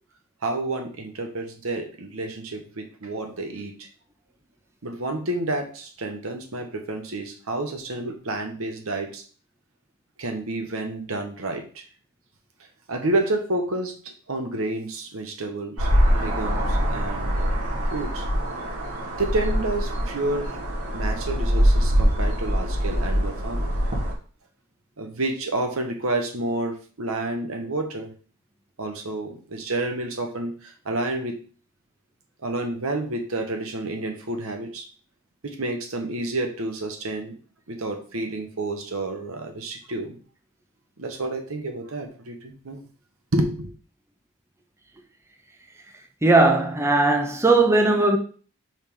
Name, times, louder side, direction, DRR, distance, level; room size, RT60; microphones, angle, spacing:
voice 1, 0.4-3.9 4.8-9.2 10.2-11.8 12.9-18.2 19.2-20.6 20.9-23.7 25.0-28.1 28.8-31.4 32.4-34.9 35.4-37.3 37.7-40.2 41.0-42.8 43.3-43.7, right 2 dB, 70° right, 1.1 m, -30 dB
sound 1, 15.8-24.1, equal, 90° right, 1.9 m, -23 dB
voice 2, 46.2-48.2, right 2 dB, 10° right, 0.6 m, -18 dB
5.4 x 3.5 x 5.4 m
head